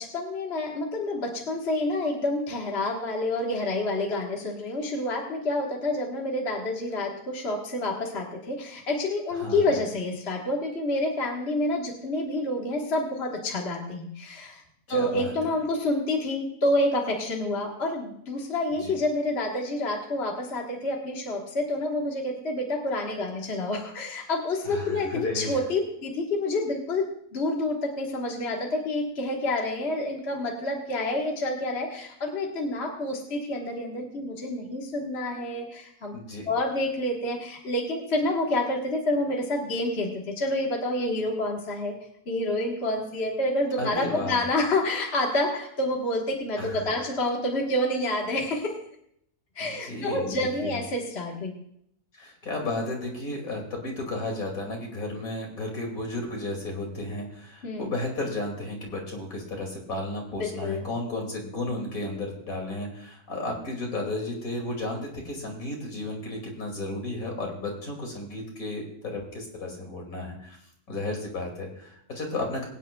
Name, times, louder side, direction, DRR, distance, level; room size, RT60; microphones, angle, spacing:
voice 1, 0.0-14.6 14.9-36.1 36.5-42.0 42.3-48.8 49.5-51.6 57.6-57.9 60.3-60.8, left 1 dB, 45° left, -1 dB, 1.6 m, -28 dB
voice 2, 9.4-9.8 14.9-15.3 18.8-18.9 24.6-25.6 36.1-36.5 43.8-44.4 46.6-46.8 49.6-50.8 52.2-70.6 70.9-72.7, left 2 dB, 65° left, 1 dB, 2.9 m, -33 dB
23.0 x 9.4 x 2.3 m, 0.71 s
omnidirectional pair, 1.6 m